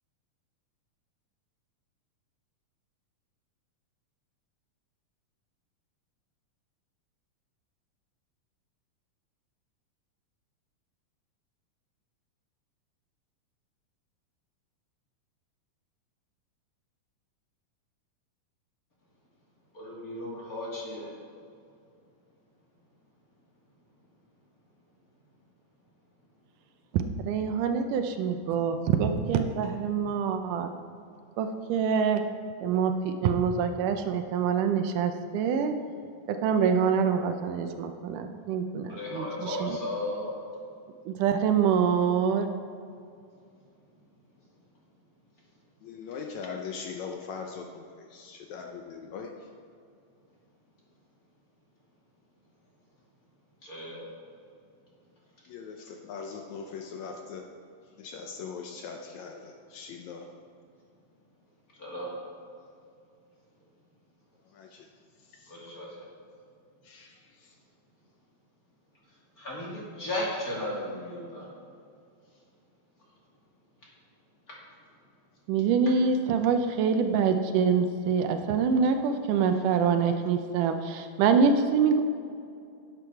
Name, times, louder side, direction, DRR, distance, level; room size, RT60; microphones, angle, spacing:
voice 1, 19.7-21.1 38.9-40.4 53.6-54.1 61.8-62.1 65.5-65.9 69.4-71.5, left 1 dB, 30° left, -5 dB, 2.5 m, -35 dB
voice 2, 26.9-30.7 31.4-32.2 32.6-35.7 36.3-39.8 41.1-42.5 75.5-82.0, right 6 dB, 80° right, 7 dB, 2.2 m, -25 dB
voice 3, 45.8-47.9 48.1-49.4 55.5-57.5 58.0-60.3 64.6-64.7 66.9-67.1, left 5 dB, 75° left, 2 dB, 1.8 m, -40 dB
10.5 x 9.6 x 4.6 m, 2.4 s
omnidirectional pair, 3.7 m